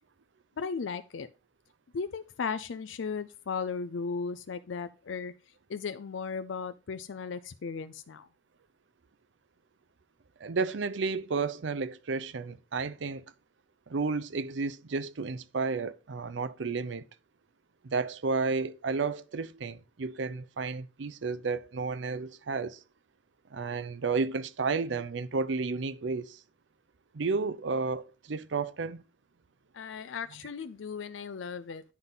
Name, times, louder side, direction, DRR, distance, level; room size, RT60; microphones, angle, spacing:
voice 1, 0.6-1.3 1.9-5.3 5.7-8.3 29.7-31.8, left 5 dB, 85° left, 0.5 m, -36 dB
voice 2, 10.4-13.2 13.9-17.0 17.8-22.8 23.5-26.4 27.1-29.0, right 4 dB, 70° right, 0.6 m, -32 dB
9.6 x 3.9 x 5.4 m
head